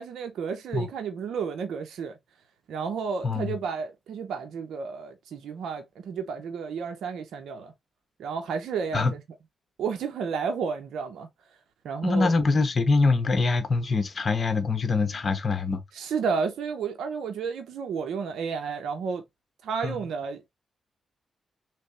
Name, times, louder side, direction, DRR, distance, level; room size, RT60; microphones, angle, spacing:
voice 1, 0.0-2.2 2.7-7.7 8.2-9.2 9.8-11.3 11.8-12.3 15.9-19.2 19.6-20.5, right 6 dB, 85° right, 0.7 m, -31 dB
voice 2, 3.2-3.6 8.9-9.1 12.0-15.8 19.8-20.0, left 3 dB, 45° left, 1.2 m, -24 dB
3.3 x 3.3 x 4.1 m
cardioid pair, 65°, 0 cm